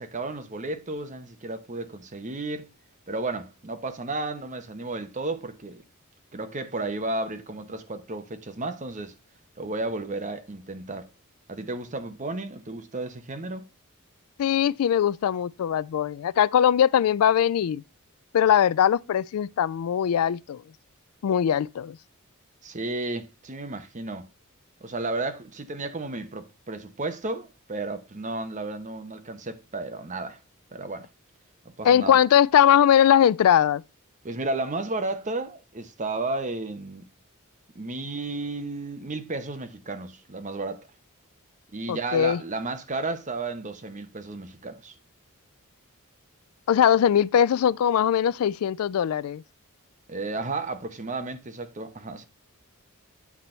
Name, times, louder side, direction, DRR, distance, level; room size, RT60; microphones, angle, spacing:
voice 1, 0.0-2.7 3.1-5.8 6.3-9.1 9.6-11.1 11.5-13.7 22.6-24.3 24.8-30.4 30.7-31.1 31.6-32.2 34.2-37.1 37.7-40.9 41.7-44.9 50.1-52.3, right 2 dB, 35° right, 0.9 m, -33 dB
voice 2, 14.4-17.8 18.3-20.6 21.2-22.0 31.8-33.8 41.9-42.4 46.7-49.4, left 9 dB, 80° left, 0.3 m, -21 dB
8.4 x 4.0 x 4.3 m
head